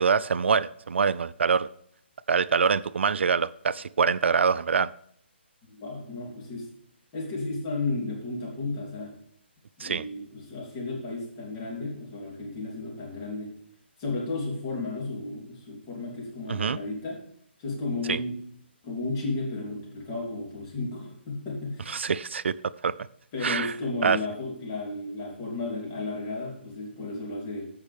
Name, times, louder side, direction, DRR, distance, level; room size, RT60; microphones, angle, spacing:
voice 1, 0.0-1.7 2.3-4.9 9.8-10.0 16.5-16.8 18.1-18.2 21.9-22.5 22.8-22.9 23.4-23.7 24.0-24.2, right 6 dB, 75° right, 17 dB, 0.4 m, -24 dB
voice 2, 5.7-6.7 7.1-9.1 9.8-13.5 14.0-17.2 17.6-18.4 18.8-22.0 23.3-27.7, left 2 dB, 25° left, -2 dB, 3.0 m, -33 dB
14.5 x 5.6 x 3.4 m, 0.66 s
hypercardioid pair, 165°, 6 cm